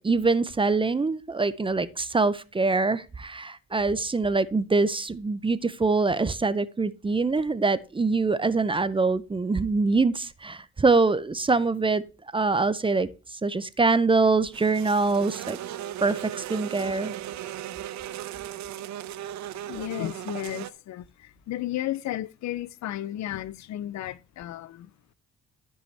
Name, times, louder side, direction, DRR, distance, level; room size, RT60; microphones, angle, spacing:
voice 1, 0.0-12.0 12.3-15.6 16.0-17.1, right 3 dB, 15° right, 0.5 m, -24 dB
sound 1, 14.5-20.7, right 12 dB, 70° right, 0.6 m, -37 dB
voice 2, 19.7-24.9, left 13 dB, 65° left, 0.5 m, -33 dB
13.0 x 5.5 x 3.3 m
cardioid pair, 90°, 30 cm